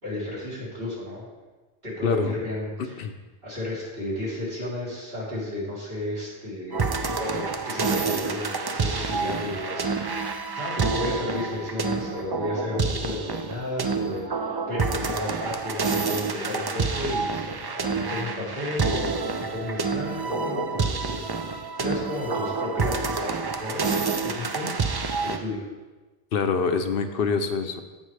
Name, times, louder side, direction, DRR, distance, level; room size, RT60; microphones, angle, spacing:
voice 1, 0.0-1.3 1.8-3.1 3.4-6.9 7.2-25.7, left 2 dB, 70° right, -8 dB, 3.7 m, -33 dB
voice 2, 2.0-2.4 3.0-3.1 26.3-27.8, left 5 dB, 70° left, 7 dB, 0.9 m, -25 dB
sound 1, 6.7-25.4, right 4 dB, 35° right, 0.4 m, -28 dB
15.0 x 5.3 x 3.3 m, 1.2 s
omnidirectional pair, 1.0 m